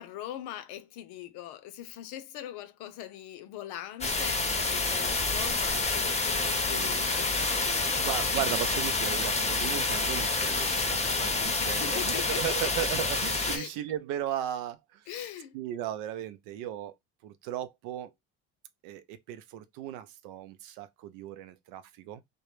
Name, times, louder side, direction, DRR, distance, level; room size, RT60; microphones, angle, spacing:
voice 1, 0.0-8.1 11.6-12.9 13.5-13.7 15.1-15.5, left 12 dB, 65° left, 0.6 m, -41 dB
sound 1, 4.0-13.6, left 3 dB, 15° left, 0.6 m, -28 dB
voice 2, 6.6-7.0 8.0-15.2 15.5-16.9 17.2-18.1 18.8-22.2, right 12 dB, 75° right, 0.5 m, -36 dB
2.2 x 2.1 x 2.9 m
hypercardioid pair, 65°, 42 cm